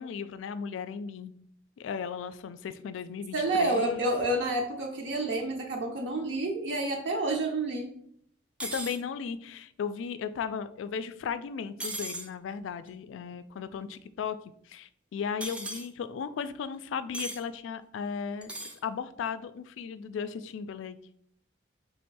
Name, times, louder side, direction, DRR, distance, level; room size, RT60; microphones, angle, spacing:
voice 1, 0.0-1.3 1.8-4.0 8.6-14.4 14.7-21.0, left 6 dB, 80° left, 13 dB, 0.3 m, -36 dB
voice 2, 3.3-7.9, right 2 dB, 65° right, 1 dB, 0.6 m, -29 dB
sound 1, 8.6-9.0 11.8-12.3 15.4-15.9 17.1-17.4 18.4-18.8, right 1 dB, 5° right, 0.4 m, -36 dB
3.4 x 2.6 x 4.5 m, 0.68 s
head